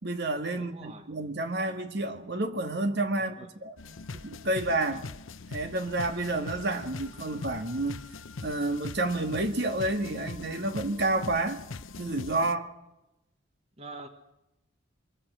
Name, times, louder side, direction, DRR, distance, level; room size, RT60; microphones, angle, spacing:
voice 1, 0.0-3.4 3.6-3.7 4.2-5.0 5.5-8.0 8.4-11.6 12.0-12.7, right 2 dB, 55° right, 1.8 m, -29 dB
voice 2, 0.5-1.1 3.2-3.5 3.8-4.2 4.9-5.0 13.8-14.1, right 2 dB, 30° right, 1.5 m, -46 dB
sound 1, 3.8-12.6, left 3 dB, 80° left, 0.8 m, -42 dB
25.0 x 22.5 x 6.2 m
head